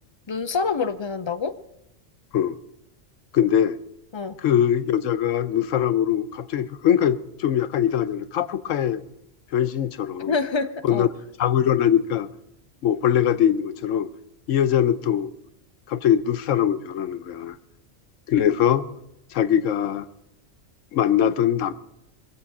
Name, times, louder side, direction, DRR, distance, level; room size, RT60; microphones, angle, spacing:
voice 1, 0.3-1.5 4.1-4.4 10.3-11.1, left 4 dB, 35° left, 0.5 m, -26 dB
voice 2, 3.3-3.8 4.4-9.0 9.5-10.4 10.8-11.1 11.4-12.3 12.8-14.1 14.5-15.3 15.9-17.6 18.3-18.8 19.3-20.1 20.9-21.7, left 9 dB, 90° left, 1.1 m, -22 dB
22.0 x 7.7 x 6.0 m
omnidirectional pair, 1.3 m